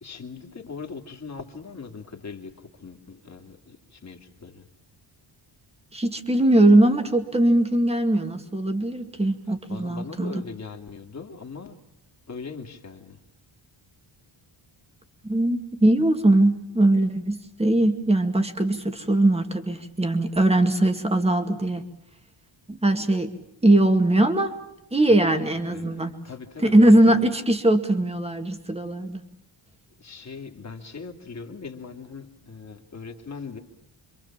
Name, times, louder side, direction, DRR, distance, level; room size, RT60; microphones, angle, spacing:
voice 1, 0.0-4.7 9.7-11.8 12.3-13.2 25.2-27.3 30.0-33.6, left 5 dB, 35° left, 3 dB, 2.7 m, -40 dB
voice 2, 5.9-10.4 15.2-21.8 22.7-23.3 23.6-24.5 24.9-26.1 26.6-29.2, right 1 dB, 10° right, 7 dB, 2.2 m, -20 dB
28.5 x 25.5 x 7.4 m, 0.80 s
wide cardioid pair, 175°, 48 cm